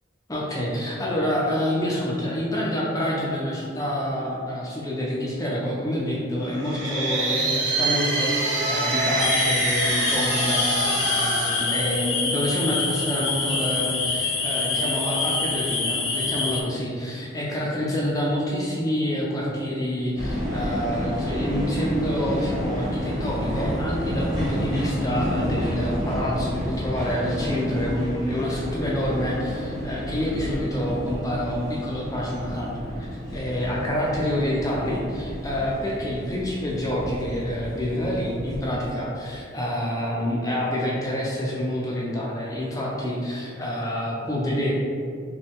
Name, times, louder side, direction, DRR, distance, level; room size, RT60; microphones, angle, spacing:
voice 1, 0.3-44.7, equal, 20° left, -5 dB, 0.5 m, -27 dB
sound 1, 6.5-12.5, right 2 dB, 65° right, 1.1 m, -25 dB
sound 2, 9.2-16.6, left 4 dB, 90° left, 0.7 m, -26 dB
sound 3, 20.2-38.8, equal, 20° right, 1.0 m, -30 dB
5.3 x 2.3 x 3.5 m, 2.3 s
head